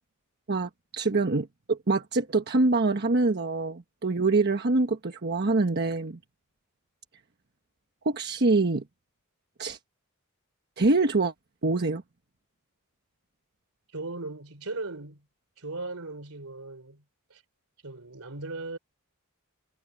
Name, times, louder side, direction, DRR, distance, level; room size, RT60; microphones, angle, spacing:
voice 1, 0.5-6.2 8.0-8.8 9.6-9.8 10.8-11.3 11.6-12.0, right 3 dB, 50° right, 1.2 m, -25 dB
voice 2, 13.9-15.3 15.6-17.0 17.3-17.4 17.8-18.8, right 3 dB, 70° right, 4.0 m, -38 dB
head